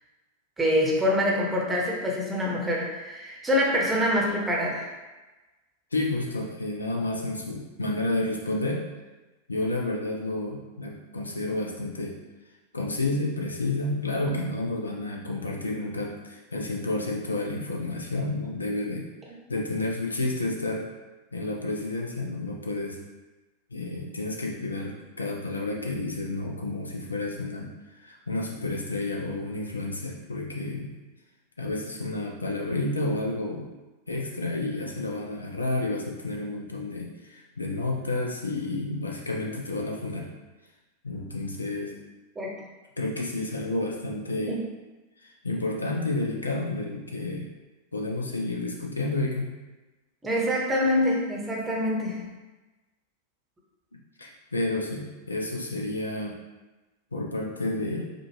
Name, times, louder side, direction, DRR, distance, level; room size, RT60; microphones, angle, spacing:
voice 1, 0.6-4.9 42.4-42.6 44.5-44.6 50.2-52.3, left 1 dB, 15° right, -2 dB, 0.8 m, -25 dB
voice 2, 5.9-8.8 9.5-12.2 12.7-19.1 19.5-20.9 21.3-23.0 23.7-30.9 31.6-33.7 34.1-40.3 41.0-41.9 43.0-44.6 45.2-47.5 47.9-49.5 53.9-56.4 57.1-58.1, left 2 dB, 80° left, -1 dB, 0.6 m, -30 dB
4.8 x 2.4 x 3.1 m, 1.1 s
figure-of-eight pair, 90°, 0 cm